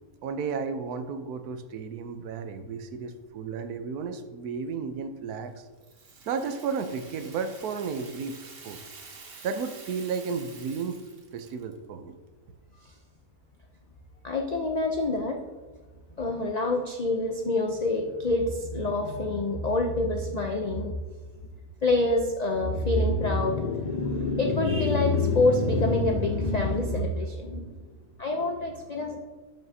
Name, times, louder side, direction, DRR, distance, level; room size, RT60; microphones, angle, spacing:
voice 1, 0.2-5.6 6.3-8.8 9.4-11.0 11.3-12.2, right 5 dB, 90° right, 9 dB, 1.2 m, -33 dB
Rattle (instrument), 5.8-11.8, right 4 dB, 45° right, 1.1 m, -48 dB
voice 2, 14.2-15.4 16.2-20.9 21.8-27.7 28.2-29.2, left 2 dB, 85° left, 2 dB, 0.3 m, -26 dB
12.5 x 5.9 x 2.7 m, 1.3 s
omnidirectional pair, 1.6 m